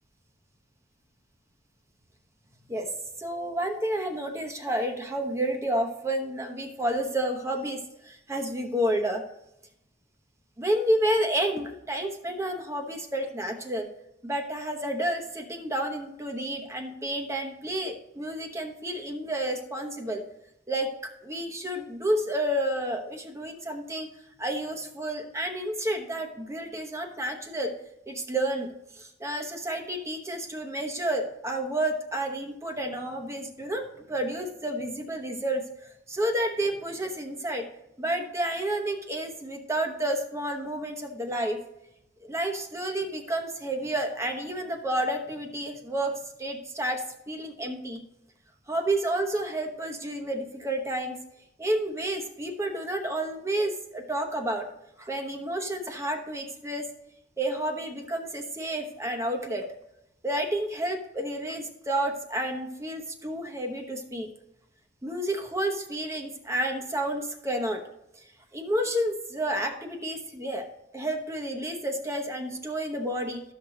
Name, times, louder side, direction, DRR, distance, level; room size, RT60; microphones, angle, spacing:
voice 1, 3.2-9.2 10.6-13.9 14.2-20.2 20.7-24.1 24.4-27.7 28.1-28.7 29.0-37.6 38.0-41.6 42.2-48.0 48.7-51.2 51.6-54.7 55.0-56.9 57.4-59.6 60.2-64.3 65.0-67.8 68.1-68.2 68.5-70.7 70.9-73.5, right 1 dB, 15° right, 4 dB, 1.0 m, -30 dB
12.5 x 6.4 x 2.9 m, 0.83 s
head